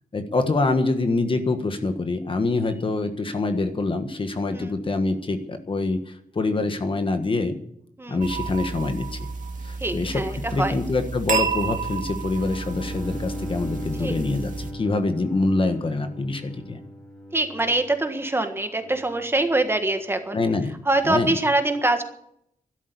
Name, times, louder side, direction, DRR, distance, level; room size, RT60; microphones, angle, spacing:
voice 1, 0.1-7.6 8.1-9.2 9.6-10.2 10.5-16.8 20.3-20.7 21.0-21.4, left 3 dB, 40° left, 7 dB, 1.5 m, -25 dB
sound 1, 8.2-14.7, right 5 dB, 65° right, 2.1 m, -31 dB
voice 2, 9.8-10.8 14.0-14.1 17.3-20.4 20.8-22.0, right 2 dB, 15° right, 7 dB, 1.5 m, -24 dB
Bowed string instrument, 12.3-19.3, equal, 5° left, 4.0 m, -39 dB
12.5 x 12.0 x 8.5 m, 0.74 s
wide cardioid pair, 145°, 14 cm